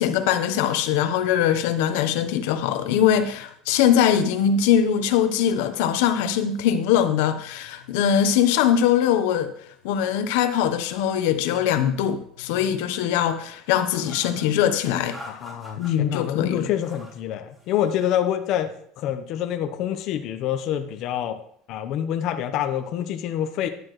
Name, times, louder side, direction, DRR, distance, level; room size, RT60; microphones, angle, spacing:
voice 1, 0.0-9.5 9.8-15.2 15.8-16.7, left 9 dB, 80° left, 0.9 m, -22 dB
sound 1, 13.7-14.5 15.1-15.9 16.6-17.2 17.5-18.1, left 1 dB, 10° right, 3.4 m, -44 dB
voice 2, 15.3-18.7 19.0-21.4 21.7-23.7, left 10 dB, 50° left, 0.9 m, -26 dB
11.0 x 9.7 x 3.2 m
cardioid pair, 145°, 0 cm